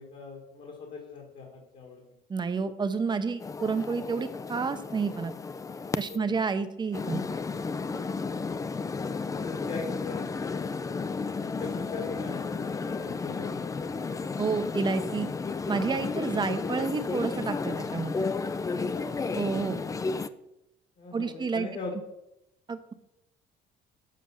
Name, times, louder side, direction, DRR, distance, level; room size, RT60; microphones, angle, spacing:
voice 1, 0.0-2.0 6.1-6.4 8.3-8.6 9.3-14.3 18.9-19.2 21.0-21.9, left 4 dB, 50° left, 0 dB, 1.8 m, -41 dB
voice 2, 2.3-5.3 6.0-7.2 14.4-15.3 15.7-18.3 19.4-19.8 21.1-21.7 22.7-22.9, right 5 dB, 25° right, 10 dB, 0.8 m, -30 dB
sound 1, 3.4-6.2 6.9-20.3, left 4 dB, 20° left, 0.4 m, -33 dB
7.5 x 5.0 x 7.1 m, 0.86 s
cardioid pair, 110°, 17 cm